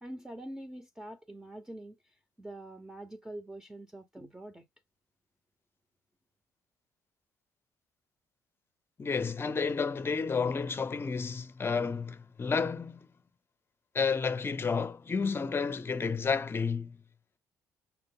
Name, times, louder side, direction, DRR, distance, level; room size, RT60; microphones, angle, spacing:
voice 1, 0.0-4.6, right 1 dB, 10° right, 0.8 m, -45 dB
voice 2, 9.0-13.1 13.9-17.0, left 5 dB, 30° left, 0.7 m, -31 dB
6.0 x 2.0 x 3.7 m
supercardioid pair, 65°, 7 cm